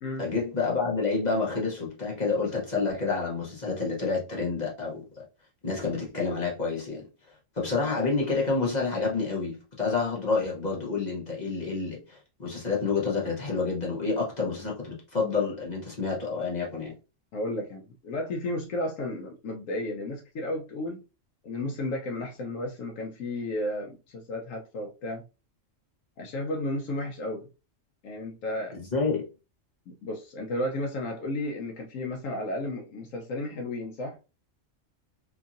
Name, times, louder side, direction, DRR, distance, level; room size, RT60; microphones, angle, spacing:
voice 1, 0.2-5.2 5.6-7.0 7.6-16.9 28.7-29.2, left 4 dB, 40° left, 0.9 m, -29 dB
voice 2, 17.3-21.0 21.4-25.2 26.2-27.5 28.0-28.8 30.0-34.2, left 1 dB, 85° left, 1.0 m, -33 dB
2.9 x 2.6 x 2.4 m
omnidirectional pair, 1.3 m